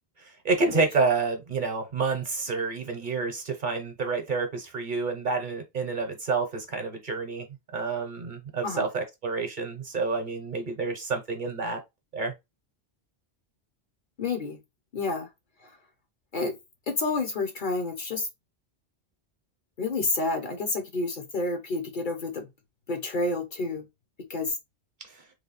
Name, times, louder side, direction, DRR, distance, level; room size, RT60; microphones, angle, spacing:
voice 1, 0.2-7.5 7.7-11.8 12.1-12.3 25.0-25.3, right 4 dB, 50° right, 0.9 m, -29 dB
voice 2, 14.2-14.6 14.9-15.3 16.3-16.5 16.9-18.3 19.8-22.5 22.9-23.9 24.3-24.6, left 3 dB, 50° left, 0.9 m, -29 dB
3.2 x 2.3 x 4.0 m
omnidirectional pair, 1.1 m